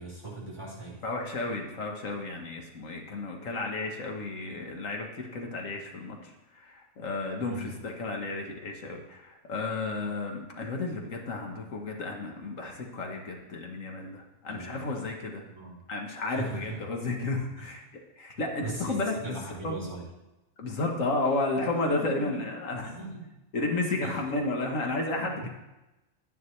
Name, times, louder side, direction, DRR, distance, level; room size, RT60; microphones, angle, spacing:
voice 1, 0.0-1.1 7.4-7.7 14.5-15.0 15.5-15.8 16.3-16.8 17.6-17.7 18.6-20.1 21.9-22.4 22.8-23.4 24.0-24.2 25.2-25.5, right 2 dB, 20° right, -7 dB, 3.8 m, -40 dB
voice 2, 1.0-15.4 15.9-17.8 18.2-19.2 19.6-19.8 20.6-22.9 23.5-25.5, left 2 dB, 75° left, 2 dB, 1.6 m, -32 dB
12.0 x 9.7 x 3.2 m, 1.0 s
omnidirectional pair, 1.4 m